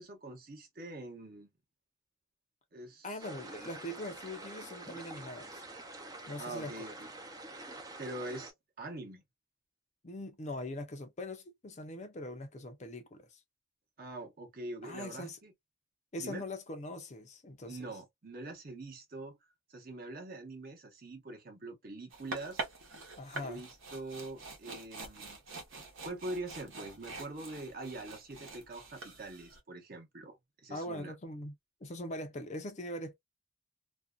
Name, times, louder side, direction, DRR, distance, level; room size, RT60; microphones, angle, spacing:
voice 1, 0.0-1.5 2.7-3.1 6.4-7.1 8.0-8.5 8.8-9.2 14.0-15.5 16.2-16.4 17.7-19.4 19.7-22.7 23.4-25.4 26.0-31.1, right 2 dB, 45° right, 0.8 m, -44 dB
voice 2, 3.0-5.6 6.3-6.9 10.0-13.4 14.8-15.4 16.1-17.8 23.2-23.6 30.7-31.6 31.8-33.1, left 1 dB, 35° left, 0.5 m, -42 dB
sound 1, 3.2-8.5, right 2 dB, 20° right, 0.4 m, -47 dB
sound 2, 22.1-29.6, right 3 dB, 80° right, 0.9 m, -45 dB
2.5 x 2.2 x 2.3 m
head